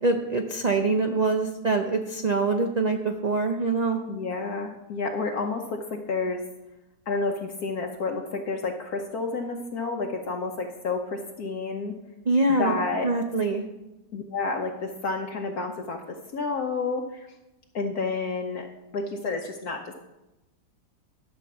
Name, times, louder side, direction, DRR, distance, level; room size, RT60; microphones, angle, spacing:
voice 1, 0.0-4.0 12.3-12.8 13.0-13.6, right 3 dB, 90° right, 4 dB, 0.3 m, -24 dB
voice 2, 4.1-6.4 7.1-11.9 12.5-13.1 14.1-17.3 17.7-18.7 18.9-19.9, left 3 dB, 65° left, 2 dB, 1.3 m, -30 dB
11.5 x 5.2 x 7.0 m, 0.99 s
omnidirectional pair, 1.8 m